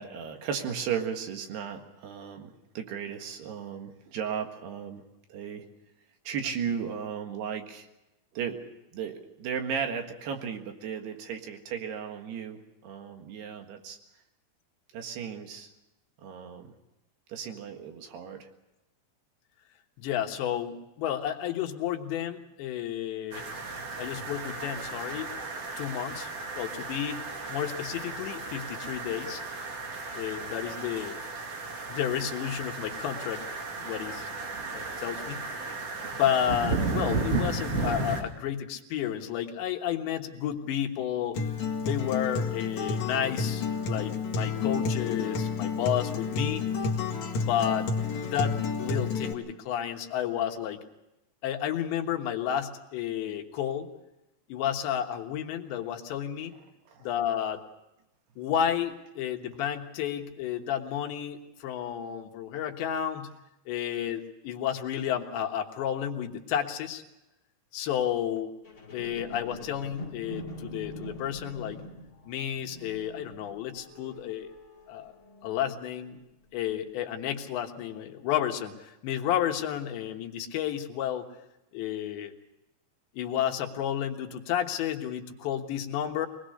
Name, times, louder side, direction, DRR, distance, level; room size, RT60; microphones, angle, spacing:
voice 1, 0.0-5.0 5.3-5.7 6.3-7.9 8.3-8.6 8.9-14.0 14.9-15.7 16.2-16.7 17.3-18.5 24.1-24.2 56.9-57.1, right 7 dB, 70° right, 5 dB, 3.7 m, -35 dB
voice 2, 20.0-23.5 24.0-25.3 25.8-26.3 26.6-29.4 30.1-31.2 31.9-33.5 33.8-34.3 34.7-35.7 36.1-41.4 41.8-46.6 47.4-47.9 48.2-50.8 51.4-53.9 54.5-56.5 57.0-57.6 58.4-63.3 63.7-67.0 67.7-68.5 68.9-71.8 72.3-74.6 74.9-75.1 75.4-76.2 76.5-81.3 81.7-82.3 83.2-86.3, left 10 dB, 80° left, 4 dB, 3.7 m, -31 dB
sound 1, 23.3-38.2, right 3 dB, 40° right, 3.0 m, -34 dB
Acoustic guitar, 41.3-49.3, left 5 dB, 50° left, 2.8 m, -30 dB
sound 2, 68.6-76.1 76.6-76.7, equal, 30° left, 1.9 m, -45 dB
23.5 x 20.5 x 6.5 m, 0.95 s
omnidirectional pair, 5.0 m